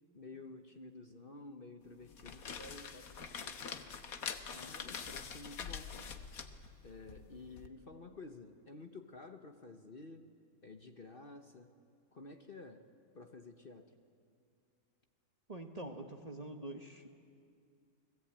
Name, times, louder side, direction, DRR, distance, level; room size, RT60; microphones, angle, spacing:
voice 1, 0.1-3.9 4.5-6.1 6.8-10.3 10.6-11.7 12.1-12.9 13.1-14.0, left 3 dB, 40° left, 6 dB, 1.2 m, -52 dB
sound 1, 2.0-7.7, left 6 dB, 65° left, 1.6 m, -45 dB
voice 2, 15.5-17.1, right 1 dB, 25° right, 5 dB, 1.2 m, -45 dB
30.0 x 20.0 x 8.8 m, 2.3 s
omnidirectional pair, 1.6 m